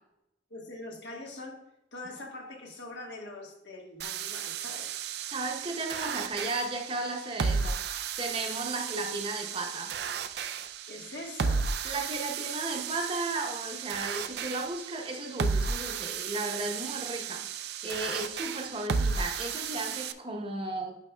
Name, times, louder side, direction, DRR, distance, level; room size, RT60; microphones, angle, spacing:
voice 1, 0.5-1.6 1.9-5.0 10.9-11.7, left 2 dB, 70° left, 0 dB, 1.5 m, -43 dB
sound 1, 4.0-20.1, right 5 dB, 60° right, 0.4 m, -34 dB
voice 2, 5.2-9.9 11.8-21.0, right 2 dB, 30° right, 2 dB, 0.8 m, -35 dB
9.3 x 5.8 x 2.2 m, 0.86 s
head